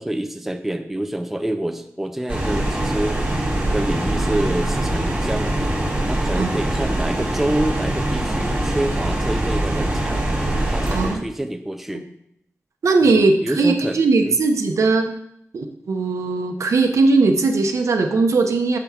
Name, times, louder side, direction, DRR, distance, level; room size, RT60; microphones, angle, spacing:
voice 1, 0.0-5.6 6.1-10.3 10.7-12.1 13.0-14.4, right 1 dB, 5° right, 6 dB, 0.4 m, -27 dB
sound 1, 2.3-11.1, right 1 dB, 35° right, 1.7 m, -23 dB
voice 2, 10.9-11.3 12.8-15.1 15.5-18.8, right 3 dB, 65° right, 5 dB, 0.7 m, -19 dB
6.7 x 3.6 x 5.6 m, 0.75 s
wide cardioid pair, 170°, 6 cm